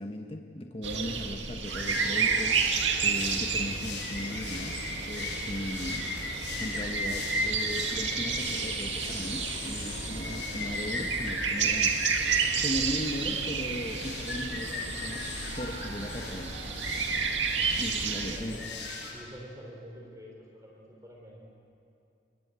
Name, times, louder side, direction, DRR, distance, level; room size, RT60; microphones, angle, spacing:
voice 1, 0.0-6.1 6.6-12.2 12.6-15.2 15.6-16.5 17.8-18.6, equal, 30° left, 3 dB, 1.3 m, -37 dB
sound 1, 0.8-18.4, right 5 dB, 80° right, 2.2 m, -31 dB
sound 2, 1.5-18.5, equal, 10° left, 6.9 m, -52 dB
sound 3, 1.6-19.1, left 4 dB, 65° left, 7.5 m, -39 dB
voice 2, 18.3-18.7 19.1-21.5, equal, 20° right, -1 dB, 3.6 m, -47 dB
27.5 x 22.5 x 8.4 m, 2.7 s
head